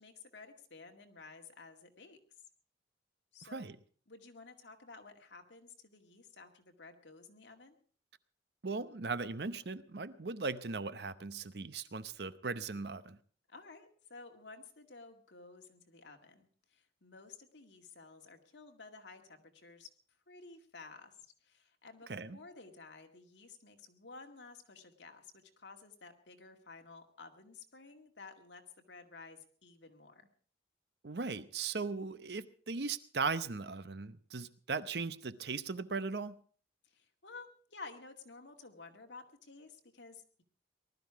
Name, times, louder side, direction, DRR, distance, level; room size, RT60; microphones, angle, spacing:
voice 1, 0.0-2.2 3.3-3.7 4.1-7.8 13.5-19.9 20.3-28.6 28.9-30.3 36.8-40.4, left 4 dB, 80° left, 2.0 m, -53 dB
voice 2, 8.6-13.2 22.1-22.4 31.0-36.4, right 4 dB, 65° right, 0.8 m, -38 dB
19.5 x 12.5 x 4.7 m
head